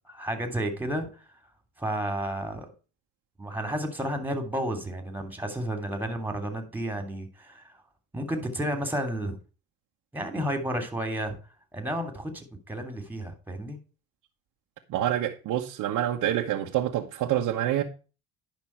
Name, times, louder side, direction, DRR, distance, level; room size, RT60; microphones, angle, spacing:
voice 1, 0.1-1.1 1.8-2.7 3.4-7.7 8.1-9.4 10.1-11.4 11.7-13.8, right 1 dB, 5° right, 3.0 m, -31 dB
voice 2, 14.9-17.8, right 12 dB, 65° right, 1.3 m, -27 dB
10.5 x 5.7 x 4.6 m
supercardioid pair, 90°, 33 cm